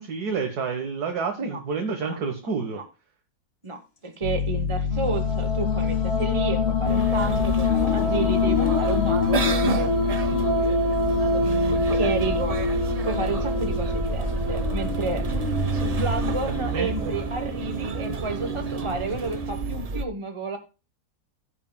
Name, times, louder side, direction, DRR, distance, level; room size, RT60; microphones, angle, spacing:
voice 1, 0.0-2.8 16.7-17.1, right 5 dB, 60° right, 4 dB, 1.8 m, -29 dB
voice 2, 2.4-2.8 3.6-10.8 11.3-12.6 13.0-15.2 15.7-20.6, right 2 dB, 20° right, 6 dB, 0.8 m, -31 dB
Piano, 4.2-16.4, left 8 dB, 65° left, 3.9 m, -29 dB
sound 1, 4.9-19.8, left 3 dB, 35° left, 1.8 m, -27 dB
sound 2, 6.8-20.0, right 4 dB, 75° right, 0.3 m, -30 dB
16.0 x 8.3 x 2.2 m, 0.30 s
omnidirectional pair, 1.9 m